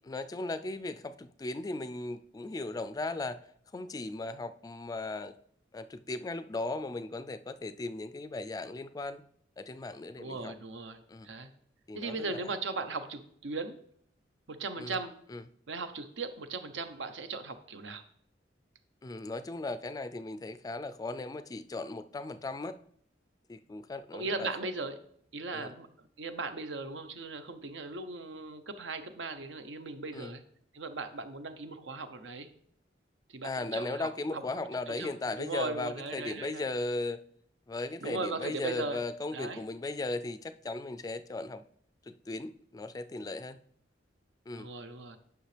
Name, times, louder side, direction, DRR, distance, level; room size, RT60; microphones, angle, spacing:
voice 1, 0.1-3.4 3.7-5.4 5.7-9.2 9.6-10.5 11.1-11.3 11.9-12.5 14.8-15.0 15.3-15.4 19.0-22.8 23.5-24.5 25.5-25.7 30.1-30.3 33.4-37.2 37.7-41.6 42.1-43.6 44.5-44.7, left 2 dB, 20° left, 0.3 m, -37 dB
voice 2, 10.2-11.5 11.9-13.8 14.5-15.1 15.7-18.0 24.1-25.0 25.3-30.4 30.7-32.5 33.3-34.4 34.9-35.1 35.4-36.7 38.0-39.0 39.3-39.6 44.5-45.2, right 3 dB, 85° right, 0.7 m, -38 dB
9.4 x 5.9 x 3.3 m
head